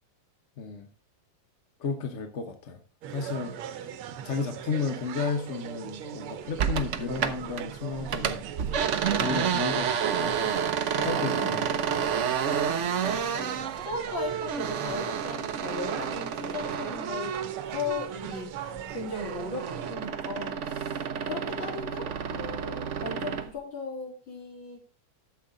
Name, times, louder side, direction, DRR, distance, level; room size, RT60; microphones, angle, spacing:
voice 1, 0.6-0.9 1.8-2.8 3.1-3.8 4.2-8.4 9.2-10.6 10.9-12.0 12.4-12.5, left 5 dB, 45° left, 1.0 m, -33 dB
sound 1, 3.0-20.0, right 9 dB, 90° right, 1.7 m, -40 dB
sound 2, 6.6-7.7 8.0-18.3 18.7-23.5, right 7 dB, 65° right, 0.7 m, -30 dB
voice 2, 12.7-24.8, left 4 dB, 65° left, 4.1 m, -38 dB
12.0 x 7.4 x 3.8 m
omnidirectional pair, 2.3 m